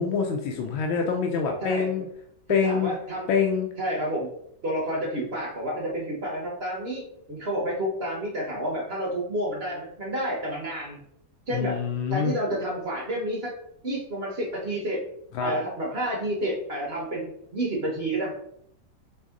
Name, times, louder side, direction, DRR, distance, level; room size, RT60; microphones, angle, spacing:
voice 1, 0.0-2.1 2.5-2.9 3.3-3.7 11.5-12.3 15.3-15.5, left 6 dB, 90° left, 2 dB, 1.4 m, -25 dB
voice 2, 1.6-2.0 2.5-3.3 3.8-4.3 4.6-7.0 7.3-11.0 11.5-11.8 12.1-13.5 13.8-15.1 15.4-18.3, right 1 dB, 45° right, -3 dB, 0.9 m, -30 dB
4.1 x 3.4 x 3.6 m, 0.72 s
omnidirectional pair, 2.1 m